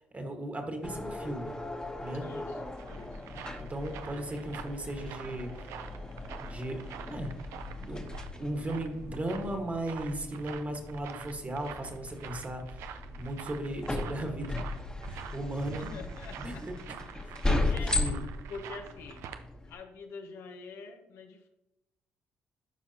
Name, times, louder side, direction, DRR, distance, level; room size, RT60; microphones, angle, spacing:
voice 1, 0.1-1.5 2.0-2.3 3.6-5.7 6.4-6.8 7.1-7.3 7.8-14.6 15.1-15.9 16.4-17.0 17.2-17.6 17.9-18.3, right 1 dB, 30° right, 4 dB, 1.7 m, -36 dB
sound 1, 0.8-19.7, left 2 dB, 15° left, 1.2 m, -37 dB
voice 2, 2.2-3.2 15.8-16.6 17.1-18.1 18.5-19.2 19.7-21.5, left 4 dB, 75° left, 4 dB, 0.9 m, -46 dB
sound 2, 2.4-19.4, right 9 dB, 80° right, 0.5 m, -47 dB
12.0 x 4.6 x 2.9 m, 0.91 s
supercardioid pair, 60°, 5 cm